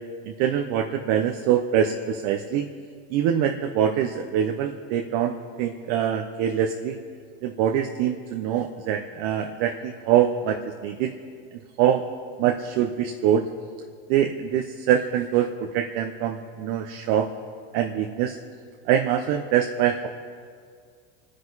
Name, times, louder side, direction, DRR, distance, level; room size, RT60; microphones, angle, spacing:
voice 1, 0.3-2.7 3.1-7.0 7.4-11.1 11.8-12.0 12.4-13.5 14.1-17.3 17.7-18.4 18.9-20.1, right 9 dB, 60° right, 4 dB, 1.0 m, -24 dB
27.0 x 10.0 x 4.1 m, 2.1 s
supercardioid pair, 115°, 29 cm